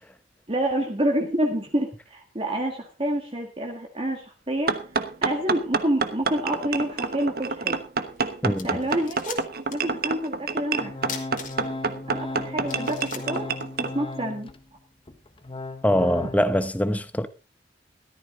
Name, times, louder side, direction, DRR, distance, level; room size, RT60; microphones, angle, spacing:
voice 1, 0.5-4.8 5.2-7.8 8.4-9.4 9.7-11.2 12.1-13.5 13.8-14.5, right 1 dB, 30° right, 1.8 m, -28 dB
sound 1, 4.7-13.9, right 4 dB, 55° right, 1.1 m, -28 dB
sound 2, 8.2-8.3 8.5-9.9 10.2-10.3 11.0-11.9 12.3-12.4 12.7-14.2, left 7 dB, 50° left, 2.5 m, -39 dB
voice 2, 8.4-8.8 15.8-17.3, equal, 10° left, 0.9 m, -23 dB
Organ, 10.8-14.6 15.1-16.4, left 2 dB, 30° left, 1.2 m, -36 dB
14.0 x 13.5 x 3.8 m
head